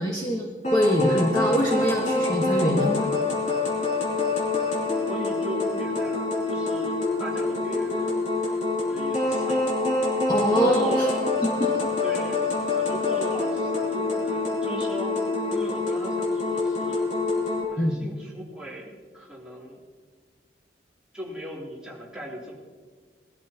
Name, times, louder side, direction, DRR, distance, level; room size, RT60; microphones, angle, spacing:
voice 1, 0.0-3.1 10.3-11.1 11.6-11.7 17.8-17.9, equal, 20° left, -3 dB, 1.5 m, -24 dB
sound 1, 0.6-17.6, left 3 dB, 40° left, 3.2 m, -26 dB
voice 2, 5.0-9.6 10.5-11.2 12.0-12.4 12.7-15.2 15.5-17.0 17.7-19.8 21.1-22.6, equal, 5° right, -7 dB, 3.2 m, -38 dB
20.5 x 13.5 x 2.9 m, 1.5 s
head